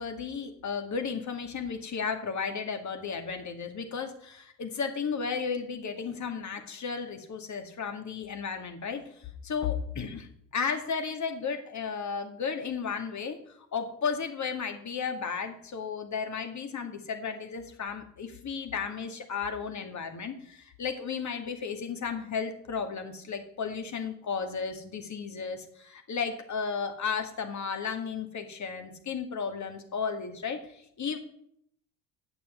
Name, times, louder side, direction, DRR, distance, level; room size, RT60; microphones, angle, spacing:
voice 1, 0.0-31.2, left 6 dB, 35° left, 6 dB, 2.1 m, -34 dB
8.9 x 6.7 x 8.1 m, 0.70 s
hypercardioid pair, 60°, 47 cm